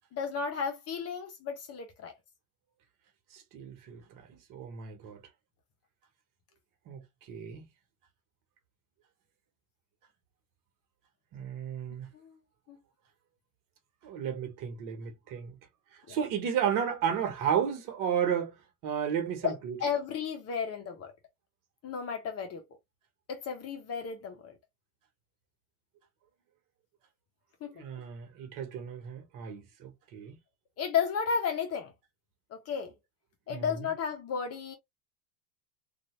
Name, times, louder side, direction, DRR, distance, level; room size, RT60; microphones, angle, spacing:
voice 1, 0.1-2.1 12.1-12.4 12.7-12.8 16.1-16.2 19.4-21.1 21.8-22.6 23.3-24.5 27.6-27.8 30.8-31.9 32.5-32.9 33.5-34.7, left 6 dB, 35° left, 1.1 m, -33 dB
voice 2, 3.3-5.2 6.9-7.0 7.3-7.7 11.3-12.1 14.0-15.5 16.1-18.5 18.8-19.8 27.7-30.4 33.5-33.6, right 8 dB, 45° right, 1.4 m, -33 dB
2.9 x 2.6 x 3.2 m
hypercardioid pair, 105°, 45 cm